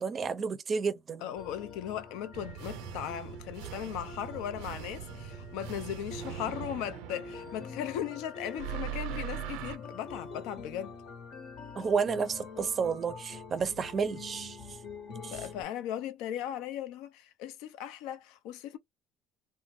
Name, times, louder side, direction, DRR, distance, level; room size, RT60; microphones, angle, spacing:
voice 1, 0.0-1.2 11.7-14.6 15.2-15.4, right 5 dB, 30° right, 0.5 m, -31 dB
voice 2, 1.2-11.0 15.3-18.8, left 10 dB, 85° left, 0.4 m, -38 dB
sound 1, 1.4-15.6, left 4 dB, 55° left, 0.9 m, -46 dB
sound 2, 2.3-8.1 8.6-9.8, right 13 dB, 90° right, 0.3 m, -41 dB
2.5 x 2.1 x 3.2 m
cardioid pair, 135°, 0 cm